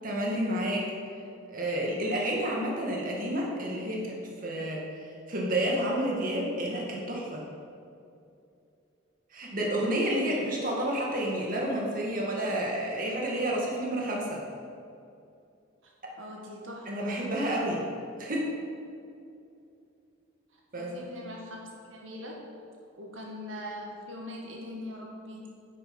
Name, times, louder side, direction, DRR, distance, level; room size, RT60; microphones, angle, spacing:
voice 1, 0.0-0.9 1.5-4.1 4.4-4.8 5.3-7.4 9.3-14.4 16.9-17.8 18.2-18.5 20.7-21.0, right 1 dB, 45° right, -2 dB, 1.9 m, -30 dB
voice 2, 16.2-17.1 20.7-22.5 23.0-25.4, left 1 dB, 80° right, -1 dB, 1.7 m, -41 dB
9.8 x 8.5 x 5.4 m, 2.6 s
head